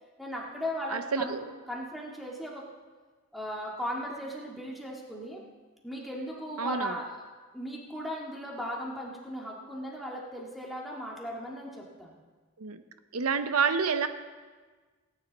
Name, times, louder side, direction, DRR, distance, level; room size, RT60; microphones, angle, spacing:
voice 1, 0.2-1.4 1.7-2.7 3.3-5.4 5.8-7.2 7.5-12.1, equal, ahead, -3 dB, 1.8 m, -37 dB
voice 2, 0.9-1.5 6.6-6.9 12.6-12.8 13.1-14.1, right 5 dB, 85° right, 10 dB, 0.7 m, -28 dB
18.0 x 9.9 x 4.0 m, 1.4 s
head